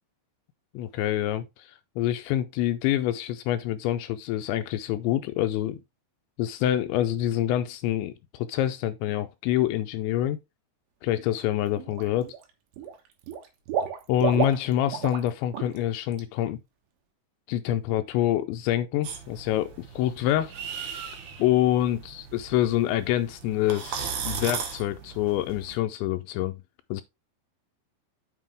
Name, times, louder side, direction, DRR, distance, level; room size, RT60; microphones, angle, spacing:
voice 1, 0.7-5.8 6.4-10.4 11.0-12.3 14.1-16.6 17.5-20.5 21.4-26.6 26.9-27.0, left 12 dB, 85° left, 2.8 m, -26 dB
Water / Liquid, 11.1-11.4 11.8-12.4 12.7-15.3 15.5-15.8 16.1-16.2, right 8 dB, 85° right, 3.7 m, -31 dB
sound 1, 19.0-25.8, right 7 dB, 65° right, 2.1 m, -37 dB
7.5 x 6.1 x 3.4 m
omnidirectional pair, 5.3 m